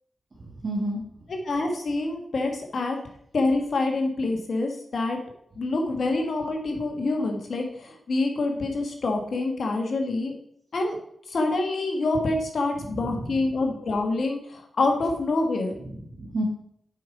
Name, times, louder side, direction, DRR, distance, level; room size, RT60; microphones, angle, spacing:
voice 1, 0.4-1.0 12.8-13.4 15.8-16.4, right 1 dB, 55° right, -3 dB, 1.8 m, -32 dB
voice 2, 1.5-3.0 3.3-5.2 5.6-10.3 10.7-11.0 11.3-15.8, left 2 dB, 70° left, 3 dB, 1.7 m, -26 dB
7.6 x 5.4 x 4.9 m, 0.70 s
cardioid pair, 50°, 0 cm